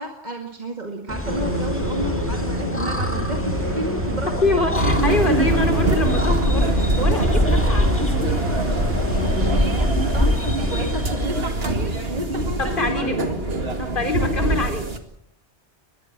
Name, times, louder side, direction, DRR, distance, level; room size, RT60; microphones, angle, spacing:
voice 1, 0.0-4.3 9.4-13.4, right 1 dB, 40° right, 3 dB, 2.2 m, -31 dB
sound 1, 1.1-11.2, left 1 dB, 10° left, 1.9 m, -25 dB
sound 2, 1.2-14.6, equal, 80° right, 5.9 m, -28 dB
voice 2, 4.4-8.4 12.6-13.2 13.7-14.9, left 2 dB, 50° left, 6 dB, 3.7 m, -25 dB
sound 3, 4.7-15.0, right 2 dB, 60° right, 2.4 m, -24 dB
23.0 x 21.0 x 6.0 m, 0.69 s
omnidirectional pair, 1.1 m